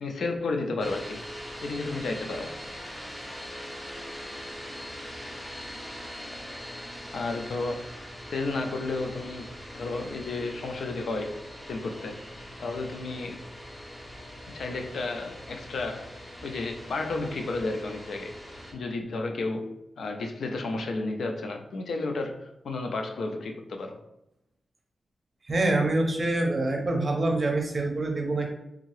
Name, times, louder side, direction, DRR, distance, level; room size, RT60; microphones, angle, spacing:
voice 1, 0.0-1.2 1.6-2.6 7.1-7.8 8.3-9.5 9.7-11.3 11.7-12.2 12.6-13.4 14.5-16.1 16.4-18.3 18.7-24.0, left 3 dB, 75° left, 4 dB, 0.5 m, -32 dB
sound 1, 0.8-18.7, equal, 10° left, 0.7 m, -42 dB
voice 2, 25.5-28.5, right 2 dB, 35° right, 2 dB, 0.6 m, -25 dB
3.6 x 2.7 x 3.1 m, 0.84 s
wide cardioid pair, 145°, 0 cm